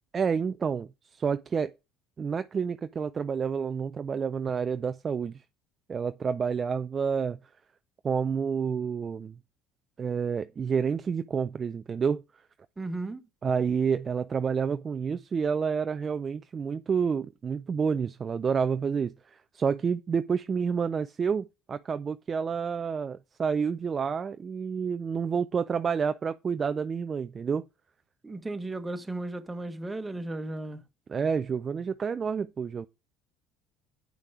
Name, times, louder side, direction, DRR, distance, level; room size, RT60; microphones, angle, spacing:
voice 1, 0.1-1.7 2.2-5.4 5.9-7.4 8.0-9.3 10.0-12.2 13.4-27.7 31.1-32.9, right 6 dB, 35° right, 0.4 m, -29 dB
voice 2, 12.8-13.2 28.2-30.8, right 2 dB, 15° right, 1.2 m, -35 dB
8.4 x 5.3 x 4.7 m
hypercardioid pair, 65°, 0 cm